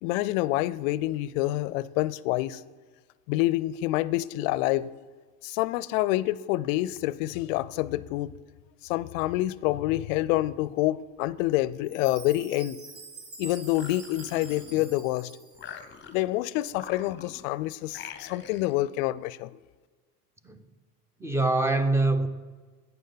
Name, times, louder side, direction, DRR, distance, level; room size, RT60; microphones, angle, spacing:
voice 1, 0.0-2.6 3.3-4.9 5.4-8.3 8.8-12.8 13.4-15.3 16.1-19.6, left 16 dB, 55° left, 0.5 m, -27 dB
Chime, 11.8-16.1, right 3 dB, 85° right, 1.7 m, -47 dB
sound 1, 13.6-15.1 15.5-16.4 16.7-17.5 17.9-18.8, left 7 dB, 25° left, 0.7 m, -45 dB
voice 2, 21.2-22.3, right 2 dB, 5° right, 0.4 m, -24 dB
11.5 x 9.0 x 4.0 m
hypercardioid pair, 95°, 47 cm